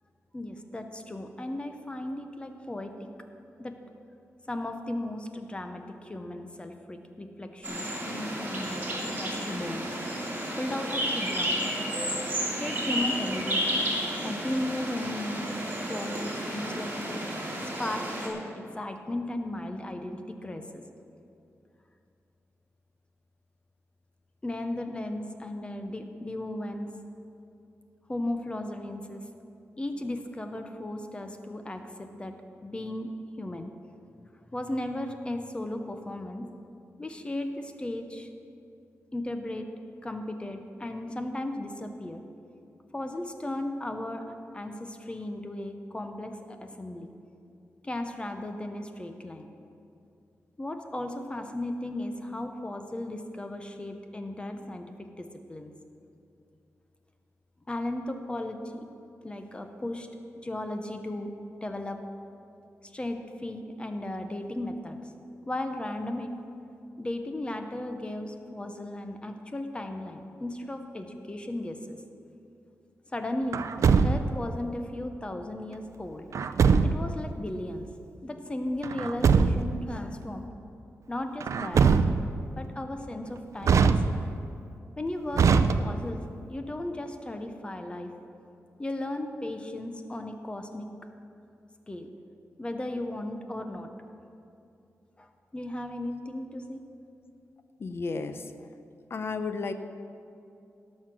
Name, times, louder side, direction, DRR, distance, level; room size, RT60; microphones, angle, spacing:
voice 1, 0.3-3.1 3.6-3.8 4.5-10.0 10.6-11.7 12.6-13.9 14.2-15.5 15.9-17.2 17.6-20.8 24.4-26.9 28.1-29.2 29.8-32.4 32.6-33.1 33.4-33.7 34.5-36.5 37.0-38.3 39.1-39.7 40.0-42.2 42.9-47.1 47.8-49.5 50.6-55.7 57.7-58.9 59.2-60.1 60.3-61.3 61.6-62.0 62.8-65.0 65.4-66.4 67.0-72.0 73.1-73.7 74.0-76.3 76.8-77.9 78.2-80.5 81.1-82.2 82.6-84.2 85.0-86.2 86.5-88.1 88.8-90.9 91.9-92.1 92.6-93.9 95.2-96.8, left 1 dB, 20° left, 6 dB, 0.8 m, -36 dB
sound 1, 7.6-18.3, equal, 35° right, 2.8 m, -32 dB
Truck, 73.5-74.5 76.3-77.2 78.8-79.8 81.4-82.4 83.6-84.5 85.3-86.2, right 5 dB, 70° right, 0.5 m, -22 dB
voice 2, 97.8-98.4 99.1-99.7, left 4 dB, 50° left, 9 dB, 0.7 m, -32 dB
18.0 x 6.5 x 6.1 m, 2.6 s
wide cardioid pair, 125°, 5 cm